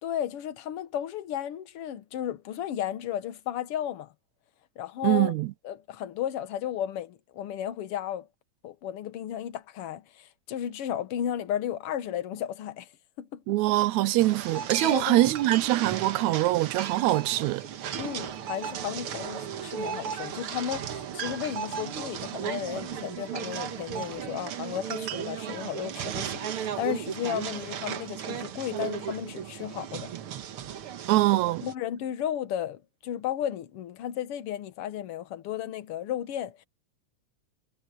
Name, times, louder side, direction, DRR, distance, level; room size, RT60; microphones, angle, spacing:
voice 1, 0.0-4.1 4.8-5.4 5.6-8.3 8.6-12.9 13.2-13.4 14.8-15.3 18.0-30.1 31.0-31.1 31.6-36.6, left 10 dB, 60° left, 1.7 m, -34 dB
voice 2, 5.0-5.5 13.5-17.6 31.1-31.6, right 17 dB, 80° right, 1.9 m, -23 dB
sound 1, 14.2-31.7, right 9 dB, 60° right, 1.7 m, -35 dB
omnidirectional pair, 3.5 m